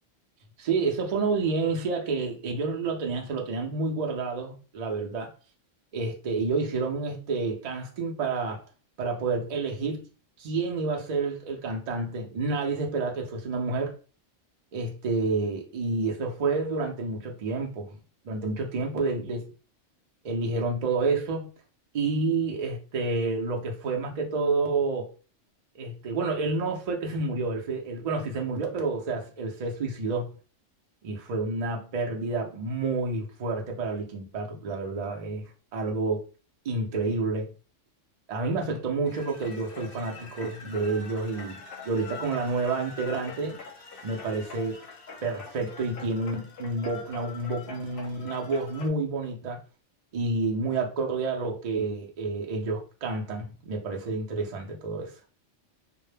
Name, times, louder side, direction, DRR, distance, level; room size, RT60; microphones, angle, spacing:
voice 1, 0.6-5.3 5.9-8.6 9.0-10.1 10.4-14.0 14.7-17.9 18.2-19.5 20.2-21.5 21.9-25.1 25.8-30.3 31.0-36.2 36.6-37.4 38.3-43.6 44.0-44.8 45.2-49.6 50.1-55.1, right 3 dB, 50° right, 0.5 m, -29 dB
sound 1, 39.1-48.9, left 4 dB, 60° left, 0.7 m, -44 dB
2.1 x 2.0 x 3.2 m
omnidirectional pair, 1.3 m